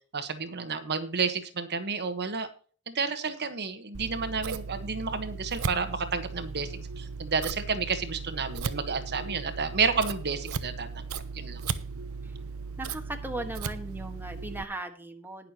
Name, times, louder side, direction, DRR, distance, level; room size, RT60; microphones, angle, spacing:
voice 1, 0.1-2.5 2.9-10.9 11.3-11.6, right 5 dB, 50° right, 9 dB, 1.2 m, -31 dB
Scissors, 3.9-14.6, right 5 dB, 85° right, 0.8 m, -37 dB
voice 2, 12.8-15.5, right 1 dB, 10° right, 4 dB, 1.5 m, -38 dB
20.0 x 6.7 x 2.9 m, 0.41 s
head